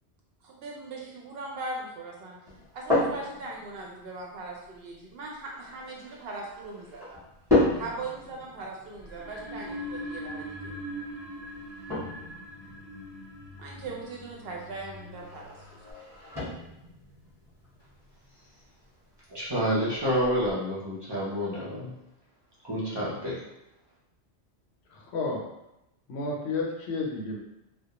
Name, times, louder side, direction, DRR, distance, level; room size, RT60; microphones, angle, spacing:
voice 1, 0.4-2.4 2.7-7.2 7.7-10.8 13.6-16.0, right 3 dB, 65° right, -2 dB, 0.8 m, -40 dB
sound 1, 2.5-20.5, left 2 dB, 5° right, 0.9 m, -34 dB
sound 2, 9.0-15.9, equal, 30° left, 0.7 m, -41 dB
voice 2, 19.3-21.9 22.6-23.3, equal, 30° right, -9 dB, 0.5 m, -28 dB
voice 3, 24.9-25.4 26.1-27.4, left 3 dB, 75° left, -1 dB, 0.8 m, -31 dB
2.2 x 2.0 x 2.9 m, 0.90 s
omnidirectional pair, 1.1 m